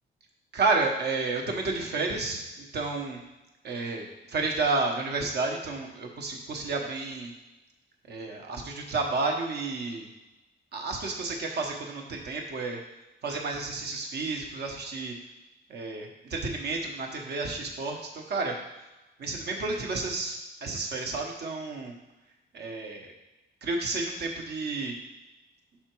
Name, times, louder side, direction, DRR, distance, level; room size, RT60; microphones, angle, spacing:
voice 1, 0.5-3.2 3.6-7.3 8.1-10.1 10.7-12.8 13.2-15.2 15.7-18.6 19.2-21.9 22.5-23.1 23.6-24.9, right 3 dB, 60° right, 2 dB, 1.1 m, -31 dB
5.7 x 4.3 x 4.6 m, 1.0 s
wide cardioid pair, 160°, 19 cm